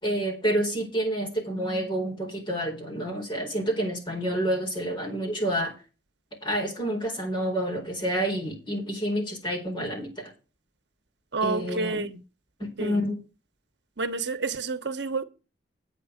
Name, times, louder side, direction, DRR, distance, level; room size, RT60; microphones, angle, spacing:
voice 1, 0.0-5.7 6.4-10.3 11.4-12.1 12.6-13.2, right 1 dB, 25° left, 4.3 m, -28 dB
voice 2, 11.3-12.2 12.8-13.0 14.0-15.2, right 3 dB, 80° right, 1.1 m, -29 dB
9.3 x 8.2 x 5.1 m
head